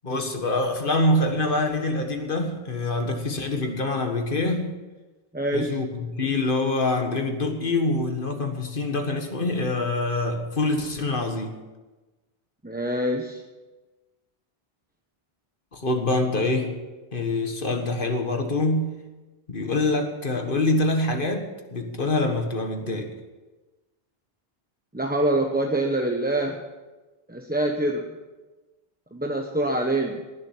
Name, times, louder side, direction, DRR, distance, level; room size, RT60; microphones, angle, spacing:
voice 1, 0.0-4.7 5.5-11.6 15.7-16.8 17.1-19.0 19.5-23.1, left 2 dB, 60° left, 5 dB, 1.7 m, -25 dB
voice 2, 5.3-5.8 12.6-13.4 24.9-26.6 27.3-28.1 29.1-30.2, right 1 dB, 10° right, 2 dB, 0.9 m, -25 dB
19.0 x 7.4 x 7.4 m, 1.2 s
omnidirectional pair, 1.0 m